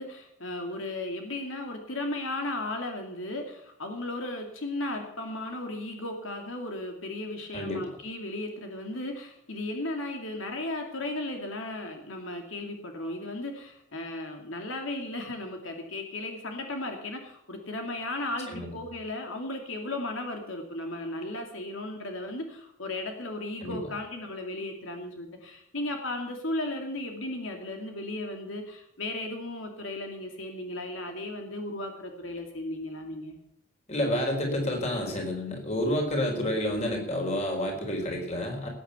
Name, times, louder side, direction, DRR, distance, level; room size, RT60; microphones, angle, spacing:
voice 1, 0.0-33.4 36.3-36.5, left 2 dB, 80° left, 3 dB, 2.5 m, -35 dB
voice 2, 7.5-7.8 18.5-18.7 23.6-23.8 33.9-38.7, left 1 dB, 35° left, 2 dB, 4.4 m, -29 dB
19.5 x 9.0 x 6.9 m, 0.75 s
head